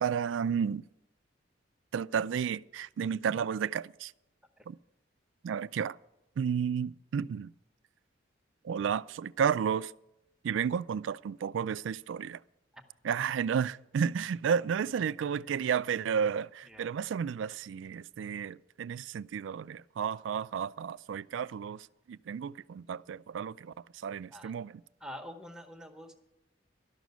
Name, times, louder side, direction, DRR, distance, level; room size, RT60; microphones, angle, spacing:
voice 1, 0.0-0.8 1.9-4.1 4.7-4.8 5.4-6.0 6.4-7.5 8.6-9.9 10.4-12.4 13.0-24.7, right 7 dB, 80° right, 0.3 m, -32 dB
voice 2, 16.6-17.0 24.3-24.5 25.0-26.1, equal, 5° right, 0.9 m, -46 dB
12.5 x 6.2 x 9.2 m
head